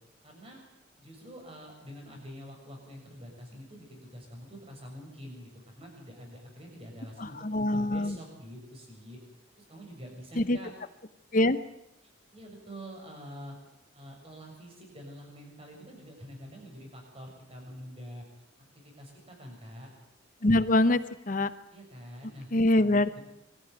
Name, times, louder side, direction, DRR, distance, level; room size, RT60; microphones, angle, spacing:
voice 1, 0.2-0.6 1.0-5.5 5.7-9.2 9.5-10.7 12.3-13.6 13.9-18.2 18.7-19.9 21.7-22.5 23.1-23.2, equal, 30° right, 1 dB, 7.0 m, -46 dB
voice 2, 7.2-8.1 10.4-10.6 11.3-11.6 20.4-21.0 21.3-21.5 22.5-23.2, left 1 dB, 45° left, 13 dB, 0.8 m, -24 dB
23.5 x 14.0 x 9.4 m, 0.83 s
head